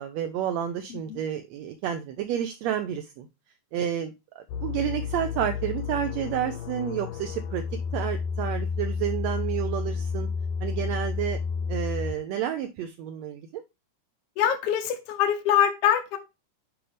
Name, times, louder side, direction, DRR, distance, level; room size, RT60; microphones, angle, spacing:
voice 1, 0.0-3.3 3.7-7.6 7.9-10.3 10.6-11.4 11.7-13.6, right 10 dB, 75° right, 7 dB, 1.7 m, -30 dB
sound 1, 4.5-12.2, left 5 dB, 85° left, 1.5 m, -31 dB
voice 2, 14.4-16.2, left 9 dB, 70° left, 4 dB, 1.7 m, -23 dB
8.6 x 5.0 x 3.3 m, 0.25 s
omnidirectional pair, 3.5 m